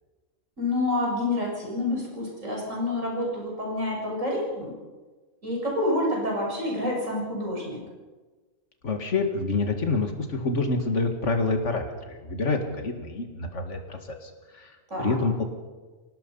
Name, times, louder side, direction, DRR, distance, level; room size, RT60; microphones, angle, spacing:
voice 1, 0.6-4.8 5.4-7.8 14.9-15.2, left 1 dB, 85° right, -2 dB, 7.2 m, -28 dB
voice 2, 8.8-14.7 15.0-15.4, left 3 dB, 70° left, 4 dB, 2.5 m, -27 dB
26.5 x 18.0 x 5.7 m, 1.3 s
omnidirectional pair, 1.3 m